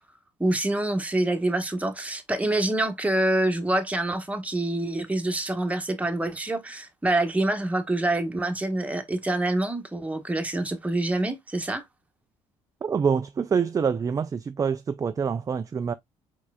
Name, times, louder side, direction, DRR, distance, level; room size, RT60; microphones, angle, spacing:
voice 1, 0.4-11.8, right 1 dB, 10° right, 1.2 m, -26 dB
voice 2, 12.8-15.9, right 6 dB, 25° right, 0.4 m, -26 dB
4.6 x 4.6 x 2.3 m
supercardioid pair, 80°, 13 cm